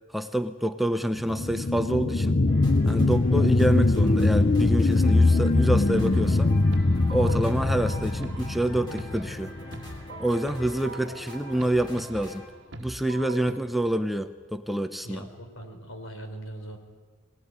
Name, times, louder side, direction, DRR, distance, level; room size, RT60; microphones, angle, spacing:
voice 1, 0.1-2.4 2.8-6.5 7.1-9.6 10.2-12.5 12.8-15.3, right 1 dB, ahead, 8 dB, 0.7 m, -27 dB
sound 1, 1.1-10.2 10.7-10.8, left 2 dB, 45° left, 0.6 m, -22 dB
sound 2, 2.5-12.5, left 1 dB, 20° left, 3.5 m, -45 dB
sound 3, 6.0-13.6, right 3 dB, 60° right, 1.5 m, -42 dB
voice 2, 15.0-16.8, right 1 dB, 85° left, 6 dB, 4.2 m, -40 dB
25.0 x 19.0 x 9.6 m, 1.5 s
head